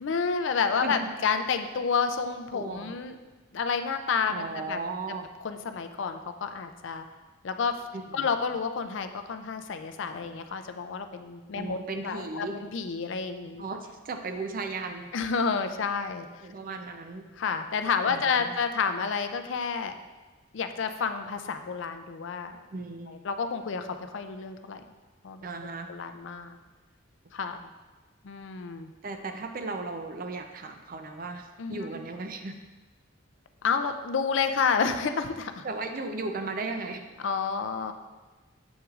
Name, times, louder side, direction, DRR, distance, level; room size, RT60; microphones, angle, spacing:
voice 1, 0.0-3.1 3.5-4.8 5.4-7.0 7.4-7.8 8.1-11.8 12.0-13.6 15.1-16.3 17.4-19.9 20.5-22.6 23.1-24.8 25.2-25.5 25.9-26.6 27.3-27.7 28.2-28.9 31.6-31.8 33.6-35.6 37.2-37.9, left 5 dB, 65° left, 8 dB, 0.4 m, -30 dB
voice 2, 0.8-1.1 2.5-2.9 4.3-5.3 7.9-8.4 11.5-12.6 13.6-15.1 16.4-17.3 18.1-18.6 22.7-23.2 25.4-25.9 29.0-32.6 35.6-37.1, right 3 dB, 45° right, 6 dB, 0.5 m, -36 dB
7.3 x 5.9 x 2.4 m, 1.2 s
head